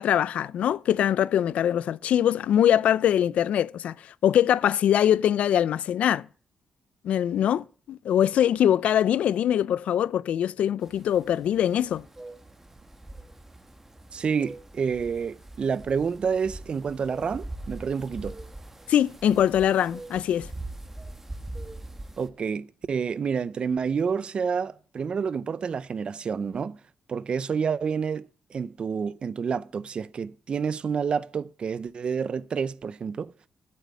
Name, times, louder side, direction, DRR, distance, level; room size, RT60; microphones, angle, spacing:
voice 1, 0.0-3.9 4.2-6.3 7.0-12.0 18.9-20.5, left 10 dB, 80° left, 0.4 m, -23 dB
sound 1, 10.8-22.3, right 2 dB, 15° right, 1.4 m, -42 dB
voice 2, 14.1-18.4 22.2-26.8 27.1-33.3, right 6 dB, 50° right, 0.6 m, -29 dB
8.3 x 7.8 x 8.3 m
cardioid pair, 90°, 2 cm